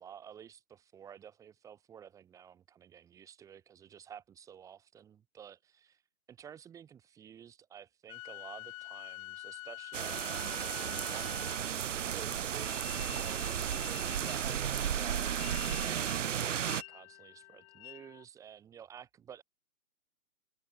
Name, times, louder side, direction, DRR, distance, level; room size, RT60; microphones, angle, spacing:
voice 1, 0.0-6.0 6.3-15.4 15.8-19.4, right 8 dB, 10° right, 1.2 m, -51 dB
sound 1, 8.1-11.9 12.6-18.2, left 22 dB, 25° left, 1.8 m, -48 dB
sound 2, 9.9-16.8, right 9 dB, 60° right, 0.5 m, -34 dB
figure-of-eight pair, 130°, 43 cm